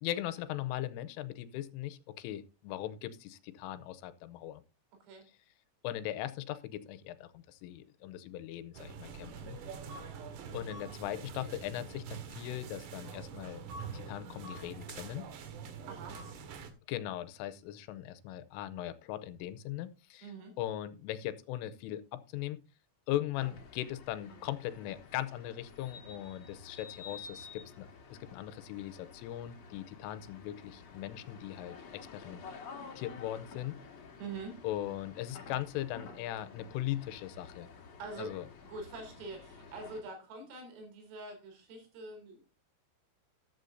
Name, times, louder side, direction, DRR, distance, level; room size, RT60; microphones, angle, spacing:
voice 1, 0.0-4.6 5.8-9.6 10.5-13.6 13.9-15.2 16.9-20.3 20.6-22.6 23.1-32.4 33.0-33.8 34.6-37.7 38.2-38.5, left 13 dB, 85° left, 14 dB, 3.2 m, -39 dB
sound 1, 8.7-16.7, right 5 dB, 65° right, 3.3 m, -45 dB
voice 2, 15.9-16.2 20.2-20.5 34.2-34.6 38.0-38.3 38.7-42.4, right 3 dB, 85° right, 4 dB, 6.6 m, -44 dB
sound 2, 23.3-40.0, left 5 dB, 55° left, 2.0 m, -51 dB
14.0 x 11.5 x 2.7 m, 0.30 s
omnidirectional pair, 5.9 m